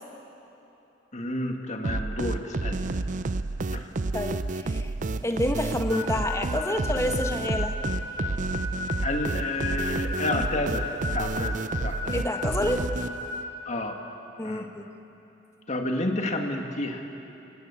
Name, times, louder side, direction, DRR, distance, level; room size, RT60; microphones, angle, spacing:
voice 1, 1.1-2.8 3.7-3.9 9.0-10.9 11.1-12.2 13.7-14.0 14.4-14.7 15.7-17.0, left 2 dB, 40° left, 3 dB, 2.0 m, -30 dB
sound 1, 1.8-13.4, right 3 dB, 45° right, 0.6 m, -30 dB
voice 2, 4.1-4.9 5.2-7.7 12.1-12.9 14.4-14.9, left 1 dB, 15° left, 5 dB, 1.4 m, -28 dB
Harmonica, 5.9-13.5, left 3 dB, 75° left, 6.3 m, -35 dB
25.0 x 18.5 x 8.4 m, 2.9 s
head